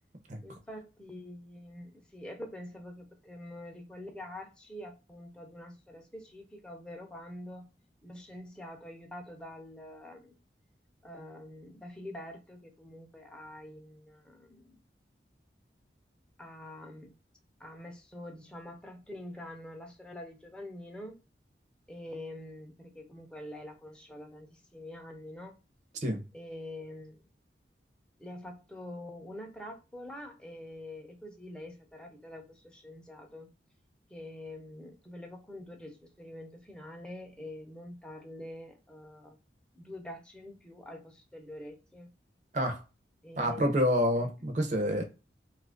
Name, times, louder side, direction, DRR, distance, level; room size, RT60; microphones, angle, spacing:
voice 1, 0.4-7.8 8.0-10.4 11.0-14.8 16.4-17.1 17.6-21.1 21.9-25.6 26.3-27.2 28.2-33.5 34.1-39.4 39.7-42.1 43.2-43.8 44.1-44.3, left 1 dB, 5° left, 0.6 m, -45 dB
voice 2, 43.4-45.0, equal, 45° right, 0.7 m, -28 dB
2.8 x 2.5 x 3.5 m
head